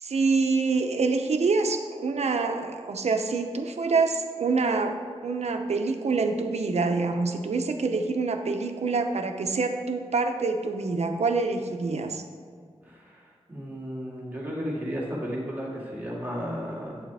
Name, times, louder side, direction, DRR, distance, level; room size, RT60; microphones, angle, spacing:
voice 1, 0.0-5.0 5.2-12.2, right 4 dB, 85° right, 6 dB, 0.7 m, -26 dB
voice 2, 12.8-13.2 13.5-17.0, equal, 15° right, -6 dB, 2.3 m, -33 dB
9.0 x 7.2 x 3.4 m, 2.1 s
wide cardioid pair, 110°, 11 cm